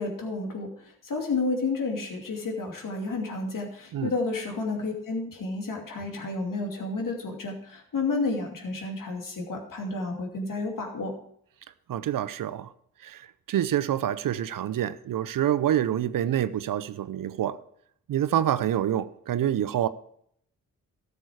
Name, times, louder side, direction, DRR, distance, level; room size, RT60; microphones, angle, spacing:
voice 1, 0.0-11.2, left 3 dB, 60° left, 2.6 m, -31 dB
voice 2, 11.9-12.7 13.0-17.6 18.1-19.9, right 11 dB, 65° right, 0.7 m, -27 dB
13.0 x 7.0 x 4.7 m
supercardioid pair, 45°, 36 cm